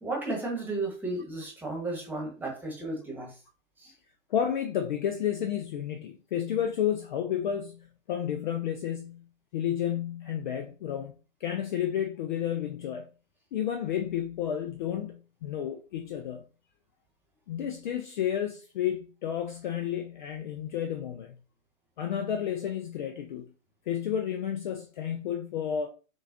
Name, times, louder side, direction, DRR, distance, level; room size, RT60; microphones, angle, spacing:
voice 1, 0.0-3.3 3.8-3.9, right 2 dB, 5° right, 1.2 m, -34 dB
voice 2, 4.3-9.3 9.5-11.1 11.4-13.1 13.5-16.4 17.5-21.3 22.0-23.5 23.9-25.9, left 9 dB, 40° left, 0.5 m, -31 dB
6.1 x 2.4 x 2.6 m
figure-of-eight pair, 120°, 39 cm